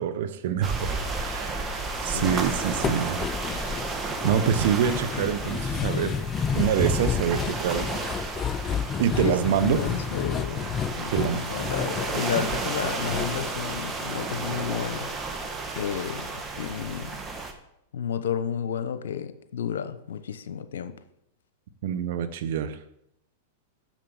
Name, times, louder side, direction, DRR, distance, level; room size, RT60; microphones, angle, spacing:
voice 1, 0.0-3.3 4.2-6.3 6.5-7.9 9.0-9.8 11.1-11.4 21.8-22.8, right 8 dB, 65° right, 11 dB, 1.0 m, -26 dB
sound 1, 0.6-17.5, right 3 dB, 20° right, 1.5 m, -33 dB
voice 2, 2.1-2.4 9.2-15.2 15.7-17.2 17.9-21.0, left 8 dB, 80° left, 12 dB, 0.9 m, -32 dB
sound 2, 2.3-14.5 14.8-14.9 15.3-15.4, left 7 dB, 30° left, 0.3 m, -31 dB
7.4 x 6.7 x 7.1 m, 0.78 s
hypercardioid pair, 115°, 0 cm